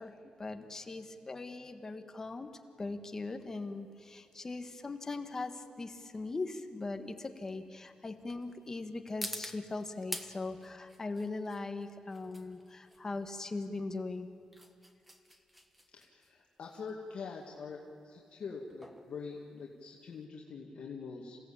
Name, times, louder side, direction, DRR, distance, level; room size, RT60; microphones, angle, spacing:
voice 1, 0.0-2.5 2.8-14.3, left 3 dB, 25° left, 7 dB, 1.6 m, -40 dB
sound 1, 3.6-20.2, equal, 5° right, 1.3 m, -49 dB
voice 2, 15.9-17.8 18.0-21.4, left 5 dB, 60° left, -1 dB, 2.1 m, -44 dB
27.5 x 17.0 x 8.7 m, 2.5 s
wide cardioid pair, 140°, 2 cm